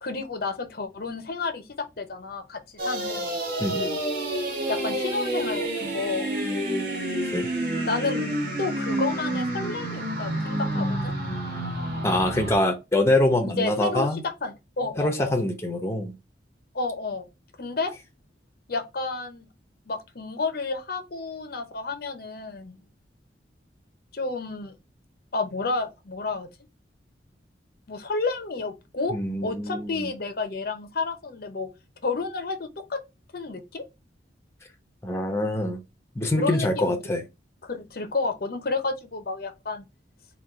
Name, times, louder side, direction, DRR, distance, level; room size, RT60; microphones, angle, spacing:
voice 1, 0.0-3.4 4.7-6.3 7.8-8.2 8.6-11.1 13.4-14.1 14.4-15.4 16.7-17.3 17.6-17.9 18.7-19.4 19.9-22.8 24.1-24.7 25.3-26.5 27.9-29.2 29.4-31.7 32.0-33.0 33.3-33.8 36.4-37.0 37.6-39.9, left 3 dB, 55° left, 0.7 m, -30 dB
sound 1, 2.8-12.6, right 1 dB, 50° right, 1.5 m, -29 dB
voice 2, 3.6-4.0 7.3-7.5 12.0-14.2 15.0-16.1 29.1-30.1 35.0-35.8 36.2-37.2, left 1 dB, 15° left, 0.7 m, -24 dB
3.8 x 2.4 x 4.6 m
head